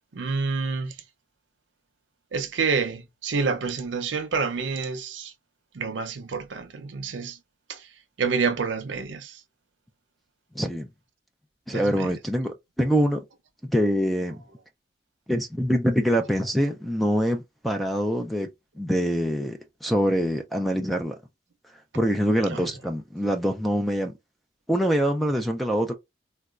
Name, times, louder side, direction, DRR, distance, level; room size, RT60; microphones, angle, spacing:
voice 1, 0.1-0.9 2.3-5.3 5.7-7.4 7.7-7.9 8.2-9.4 11.7-12.1 22.5-22.6, right 5 dB, 85° right, 0.6 m, -28 dB
voice 2, 10.5-10.9 11.7-13.2 13.7-14.4 15.3-18.5 18.8-21.2 21.9-24.1 24.7-25.9, equal, ahead, 0.3 m, -24 dB
4.0 x 2.2 x 2.3 m
head